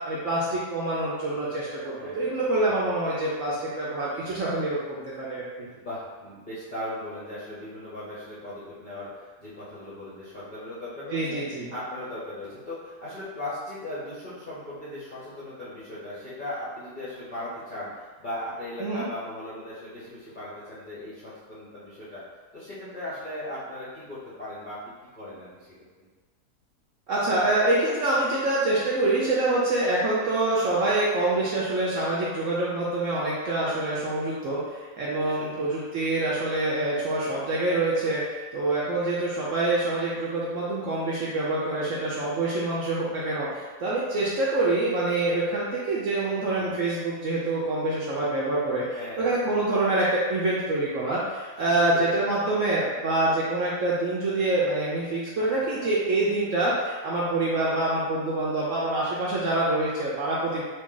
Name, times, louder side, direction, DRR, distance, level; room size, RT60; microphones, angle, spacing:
voice 1, 0.0-5.4 11.1-11.7 18.8-19.1 27.1-48.9 49.1-60.6, right 2 dB, 65° right, -6 dB, 0.8 m, -26 dB
voice 2, 2.0-2.3 5.6-11.4 11.7-22.2 22.5-24.8 25.1-25.7 26.0-26.1 35.1-35.5 46.6-46.8 48.9-49.4 51.7-52.2 55.4-55.5 55.8-55.9, left 1 dB, 45° left, -10 dB, 0.6 m, -38 dB
2.7 x 2.7 x 3.7 m, 1.4 s
omnidirectional pair, 1.8 m